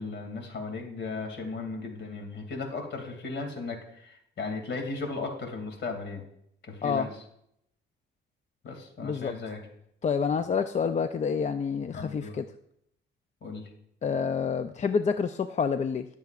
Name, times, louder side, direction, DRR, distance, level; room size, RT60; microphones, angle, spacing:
voice 1, 0.0-6.2 6.6-7.1 8.6-9.6 11.9-12.4 13.4-13.7, left 3 dB, 65° left, 4 dB, 2.6 m, -36 dB
voice 2, 9.0-9.3 10.0-12.5 14.0-16.1, left 6 dB, 35° left, 9 dB, 0.5 m, -28 dB
19.5 x 7.0 x 2.5 m, 0.74 s
cardioid pair, 90°, 20 cm